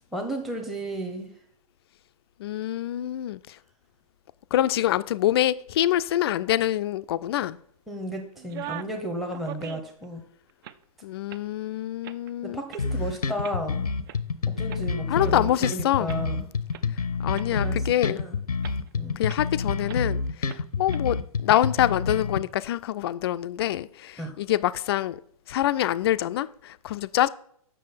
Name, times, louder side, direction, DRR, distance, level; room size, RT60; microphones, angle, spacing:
voice 1, 0.1-1.3 7.9-10.2 12.4-13.8 14.5-16.4 17.5-17.8 18.1-18.4 19.0-19.2 24.2-24.4, right 1 dB, ahead, 0.8 m, -33 dB
voice 2, 2.4-3.6 4.5-7.6 11.0-12.6 15.1-16.1 17.2-18.2 19.2-25.2 25.5-27.3, left 13 dB, 45° left, 0.4 m, -25 dB
sound 1, 8.4-9.0 9.3-10.1 10.5-10.8 11.3-11.5 12.0-12.3 12.7-12.8 13.4-13.6 14.1-14.2 14.7-15.8 16.1-16.2 16.7-16.8 17.4-17.5 18.0-18.1 18.6-18.9 19.3-19.4 19.9-20.1 20.5-20.6 20.9-21.0 21.5-21.7, right 12 dB, 35° right, 0.4 m, -40 dB
sound 2, 12.8-22.4, left 4 dB, 85° left, 0.6 m, -28 dB
7.7 x 6.1 x 4.1 m
figure-of-eight pair, 120°, 19 cm